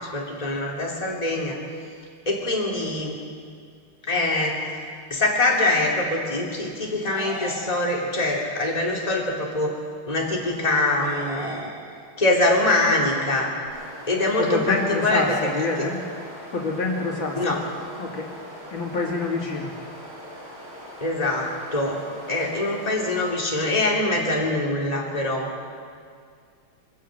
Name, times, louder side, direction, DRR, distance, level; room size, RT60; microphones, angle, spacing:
voice 1, 0.1-1.6 2.3-3.2 4.1-4.6 5.1-9.8 10.1-11.7 12.2-13.5 14.1-15.4 15.8-15.9 17.4-17.6 21.0-22.0 22.3-25.5, left 2 dB, 15° left, -2 dB, 3.0 m, -24 dB
sound 1, 7.0-8.4 11.0-12.4, right 1 dB, 15° right, 3.7 m, -38 dB
sound 2, 13.6-23.3, equal, 85° right, 5.9 m, -41 dB
voice 2, 14.4-16.0 16.5-17.6 18.0-18.3 18.7-19.7, left 3 dB, 65° left, -1 dB, 3.3 m, -26 dB
23.5 x 15.5 x 7.7 m, 2.2 s
omnidirectional pair, 2.3 m